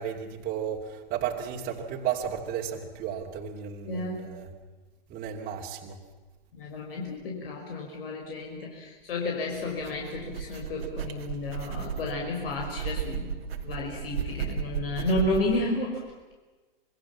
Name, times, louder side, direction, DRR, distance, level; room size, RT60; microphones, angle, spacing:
voice 1, 0.0-4.5 5.1-6.0, right 8 dB, 30° right, -1 dB, 2.8 m, -33 dB
voice 2, 3.8-4.3 6.5-13.3 13.6-16.0, left 2 dB, 70° left, 0 dB, 5.5 m, -32 dB
sound 1, 9.5-15.6, right 7 dB, 80° right, 2.8 m, -35 dB
26.5 x 22.0 x 7.4 m, 1.3 s
hypercardioid pair, 135°, 30 cm